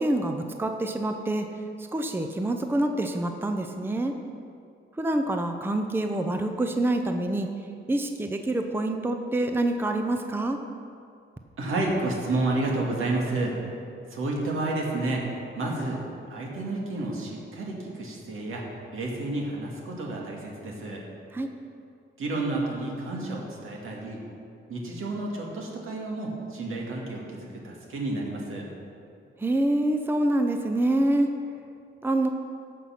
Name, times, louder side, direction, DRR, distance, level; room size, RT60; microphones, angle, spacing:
voice 1, 0.0-1.5 1.9-4.1 5.0-7.5 7.9-10.6 21.3-21.5 29.4-31.3 32.0-32.3, right 1 dB, 10° right, 5 dB, 0.6 m, -26 dB
voice 2, 11.6-13.6 14.1-15.2 15.6-16.0 16.3-18.6 18.9-21.0 22.2-24.2 24.7-28.7, right 2 dB, 80° right, -2 dB, 2.2 m, -30 dB
14.5 x 5.7 x 5.9 m, 2.4 s
wide cardioid pair, 125°, 21 cm